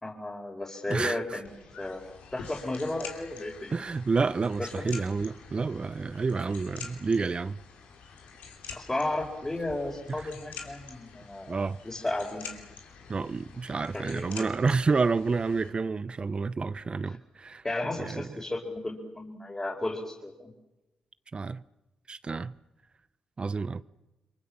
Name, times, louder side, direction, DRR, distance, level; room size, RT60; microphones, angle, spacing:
voice 1, 0.0-1.5 1.8-3.7 4.6-4.9 8.7-12.6 13.9-14.5 17.1-17.2 17.6-20.5, left 2 dB, 20° left, 5.3 m, -34 dB
voice 2, 0.9-1.4 3.7-7.6 10.1-10.3 11.5-11.8 13.1-17.6 18.0-18.3 21.3-21.6 22.1-22.5 23.4-23.8, right 4 dB, 45° right, 0.9 m, -29 dB
sound 1, 1.4-15.7, left 6 dB, 80° left, 3.2 m, -47 dB
29.5 x 23.5 x 7.5 m
supercardioid pair, 45°, 2 cm